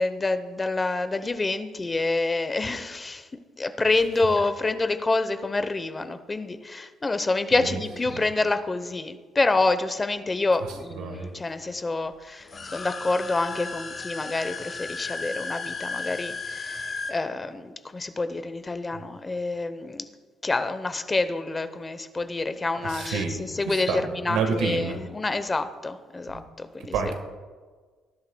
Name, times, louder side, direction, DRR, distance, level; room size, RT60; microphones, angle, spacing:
voice 1, 0.0-3.3 3.6-20.1 20.4-27.1, left 3 dB, 25° left, 10 dB, 0.8 m, -27 dB
voice 2, 10.9-11.3 22.8-25.0 26.3-26.5 26.9-27.1, right 5 dB, 85° right, 5 dB, 1.5 m, -29 dB
sound 1, 12.4-17.1, left 4 dB, 45° left, 1.8 m, -35 dB
19.5 x 11.5 x 2.3 m, 1.5 s
cardioid pair, 85°, 0 cm